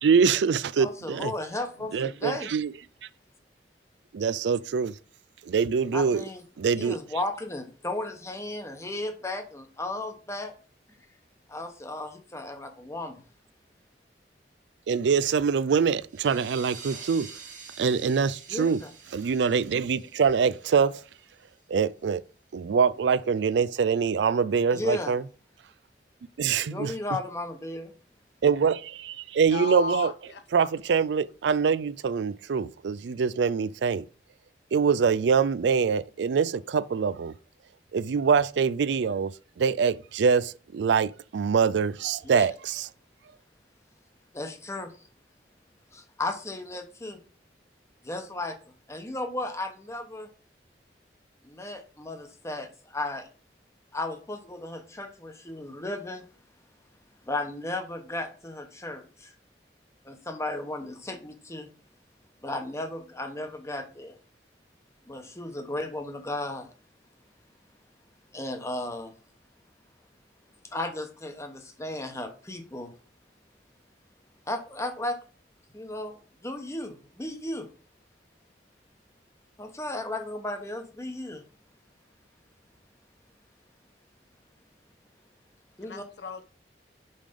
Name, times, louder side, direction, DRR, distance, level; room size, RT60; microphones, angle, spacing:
voice 1, 0.0-1.3 1.9-2.7 4.1-5.0 5.5-6.2 6.6-7.0 14.9-17.3 17.8-18.8 19.1-21.0 21.7-22.2 22.5-25.2 26.4-26.9 28.4-30.1 30.5-34.0 34.7-37.3 37.9-42.9, right 6 dB, 80° right, 0.4 m, -24 dB
voice 2, 0.8-2.5 5.9-6.4 6.8-10.5 11.5-13.2 18.5-18.9 24.7-25.1 26.7-27.9 42.2-42.5 44.3-44.9 45.9-47.2 48.0-48.6 48.9-50.3 51.4-53.3 53.9-56.2 57.3-59.3 60.0-61.7 62.4-64.2 65.0-66.7 68.3-69.1 70.7-72.9 74.5-75.2 75.7-77.7 79.6-81.4 85.8-86.1, left 2 dB, 15° left, 1.0 m, -35 dB
sound 1, 16.1-21.4, right 6 dB, 45° right, 1.5 m, -47 dB
voice 3, 29.4-31.0 85.8-86.4, left 4 dB, 75° left, 0.9 m, -36 dB
5.5 x 5.0 x 5.2 m
head